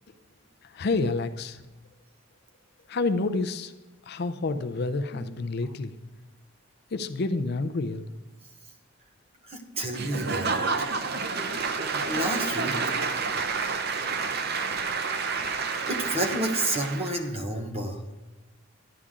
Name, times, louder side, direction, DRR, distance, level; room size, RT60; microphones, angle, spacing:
voice 1, 0.6-1.6 2.9-3.7 4.1-5.9 6.9-8.1, left 3 dB, 50° left, 10 dB, 0.5 m, -29 dB
voice 2, 9.5-10.9 12.0-12.8 15.8-18.0, right 1 dB, 30° right, 4 dB, 1.1 m, -30 dB
Applause / Crowd, 9.9-17.3, right 4 dB, 50° right, 0.7 m, -29 dB
11.5 x 9.8 x 3.7 m, 1.1 s
head